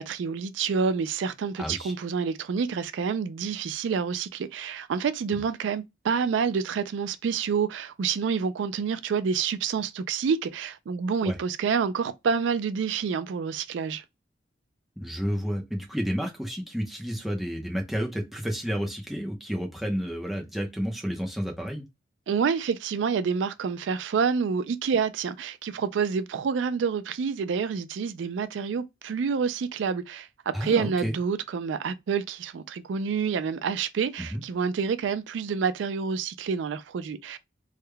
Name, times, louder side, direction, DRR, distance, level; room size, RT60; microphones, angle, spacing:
voice 1, 0.0-14.0 22.3-30.3 30.6-37.4, right 6 dB, 80° right, 0.4 m, -28 dB
voice 2, 1.6-1.9 5.4-5.5 11.2-11.4 15.0-21.8 30.5-31.1 34.2-34.4, equal, ahead, 0.7 m, -31 dB
3.5 x 2.2 x 3.2 m
head